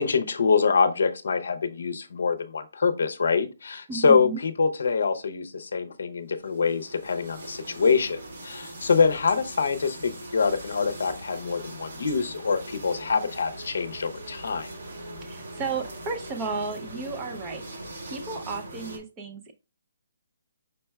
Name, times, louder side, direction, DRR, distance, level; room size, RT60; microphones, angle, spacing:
voice 1, 0.0-14.7, left 5 dB, 65° left, 0.6 m, -25 dB
voice 2, 3.9-4.4 15.2-17.6 18.1-19.5, right 4 dB, 15° right, 0.5 m, -33 dB
sound 1, 6.4-19.0, right 1 dB, 50° right, 1.3 m, -41 dB
5.3 x 4.4 x 2.2 m
hypercardioid pair, 175°, 0 cm